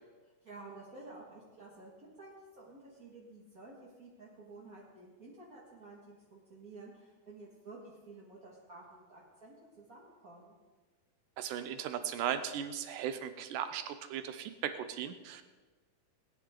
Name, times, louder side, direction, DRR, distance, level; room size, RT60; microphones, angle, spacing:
voice 1, 0.2-1.9 2.2-10.5, right 3 dB, 35° right, -6 dB, 1.4 m, -52 dB
voice 2, 11.4-15.5, right 9 dB, 80° right, 10 dB, 1.9 m, -37 dB
20.0 x 10.0 x 3.8 m, 1.3 s
omnidirectional pair, 4.4 m